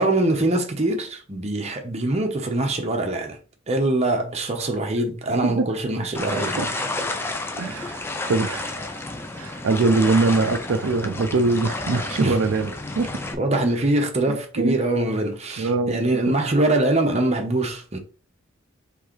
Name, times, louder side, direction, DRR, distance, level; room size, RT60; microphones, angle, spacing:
voice 1, 0.0-3.4 3.7-6.7 12.2-12.4 13.4-18.0, right 2 dB, 30° right, 0.9 m, -23 dB
sound 1, 6.1-13.3, left 2 dB, 10° left, 0.4 m, -31 dB
voice 2, 6.4-6.7 7.6-8.8 9.3-13.1 14.2-14.8 15.6-16.0, right 3 dB, 85° right, 0.5 m, -23 dB
4.6 x 3.3 x 3.1 m
head